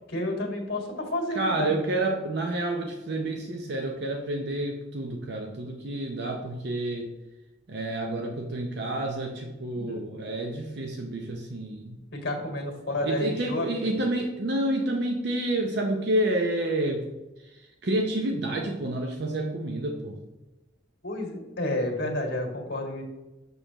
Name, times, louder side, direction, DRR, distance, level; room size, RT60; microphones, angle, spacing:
voice 1, 0.1-1.7 9.7-10.0 12.1-13.7 21.0-23.0, left 1 dB, 55° left, 1 dB, 1.7 m, -30 dB
voice 2, 1.3-7.1 7.7-12.0 13.0-17.1 17.4-20.2, right 1 dB, 60° right, 2 dB, 0.7 m, -29 dB
6.6 x 6.5 x 2.9 m, 1.1 s
head